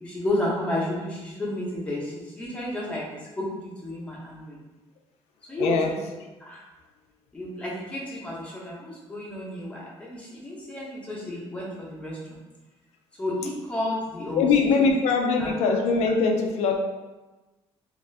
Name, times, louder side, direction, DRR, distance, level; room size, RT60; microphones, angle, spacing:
voice 1, 0.0-3.1 3.4-4.6 5.5-6.0 6.4-6.6 7.3-12.4 13.2-14.5 15.4-15.5, left 1 dB, 10° left, -5 dB, 0.7 m, -31 dB
voice 2, 5.6-5.9 14.3-16.7, left 4 dB, 80° left, 2 dB, 0.4 m, -22 dB
2.7 x 2.4 x 3.2 m, 1.2 s
cardioid pair, 165°, 11 cm